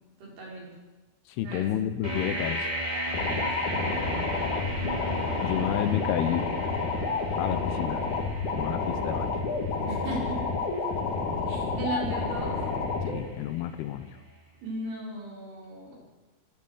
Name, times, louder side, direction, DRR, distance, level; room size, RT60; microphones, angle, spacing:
voice 1, 0.2-0.7 1.4-1.6 3.2-4.3 4.5-4.9 9.8-10.4 11.5-12.6 14.6-15.9, right 2 dB, 70° right, -3 dB, 6.4 m, -37 dB
voice 2, 1.4-2.7 5.4-6.5 7.4-8.0 8.5-9.4 13.1-14.1, left 11 dB, 80° left, 11 dB, 2.6 m, -30 dB
sound 1, 2.0-13.8, right 1 dB, 15° right, 1.4 m, -37 dB
sound 2, 3.1-13.1, left 4 dB, 55° left, 3.0 m, -29 dB
21.0 x 7.1 x 8.0 m, 1.2 s
omnidirectional pair, 4.8 m